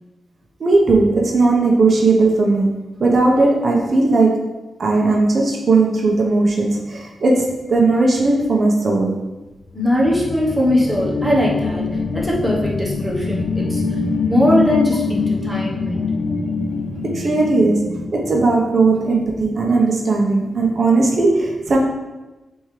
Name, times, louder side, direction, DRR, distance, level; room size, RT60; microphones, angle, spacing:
voice 1, 0.6-4.4 4.8-9.1 17.0-21.8, right 3 dB, 50° right, -1 dB, 1.0 m, -17 dB
sound 1, 9.7-19.0, left 4 dB, 65° left, 0.5 m, -24 dB
voice 2, 9.7-13.8 14.2-16.1, left 1 dB, ahead, -4 dB, 1.1 m, -20 dB
9.8 x 3.6 x 3.3 m, 1.1 s
wide cardioid pair, 160°, 0 cm